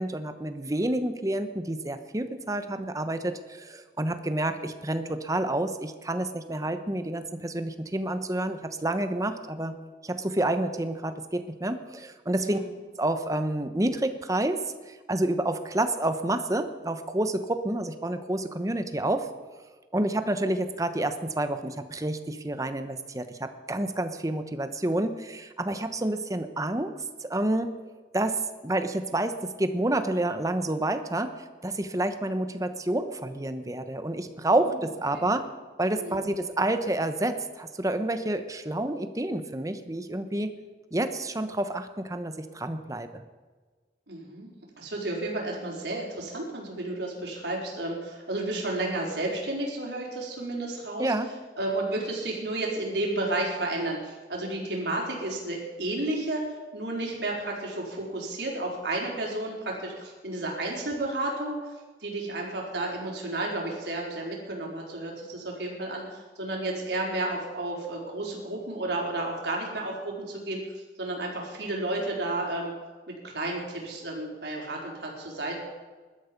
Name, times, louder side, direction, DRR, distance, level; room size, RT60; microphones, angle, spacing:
voice 1, 0.0-9.8 10.0-12.6 13.0-14.6 15.1-19.3 19.9-26.9 27.2-27.7 28.1-35.5 35.8-40.5 40.9-43.2 51.0-51.3, right 1 dB, 20° right, 9 dB, 1.0 m, -29 dB
voice 2, 12.3-12.7 34.6-34.8 35.1-35.3 36.0-36.2 44.1-44.5 44.8-51.1 51.6-61.7 62.0-72.7 73.1-75.6, right 2 dB, 75° right, -2 dB, 4.5 m, -32 dB
20.5 x 12.5 x 5.3 m, 1.4 s
head